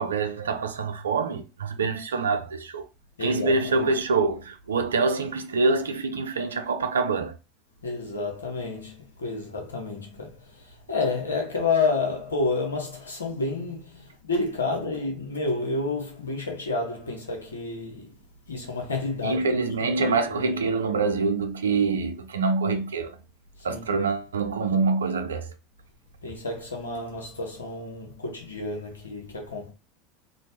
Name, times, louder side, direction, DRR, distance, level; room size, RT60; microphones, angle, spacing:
voice 1, 0.0-2.9 3.2-7.3 19.2-23.1 23.6-25.5, right 4 dB, 85° right, 0.4 m, -25 dB
voice 2, 3.2-3.9 7.8-18.2 18.5-20.6 23.7-23.9 26.2-29.7, left 3 dB, 90° left, 0.9 m, -30 dB
3.1 x 2.1 x 2.7 m
hypercardioid pair, 85°, 0 cm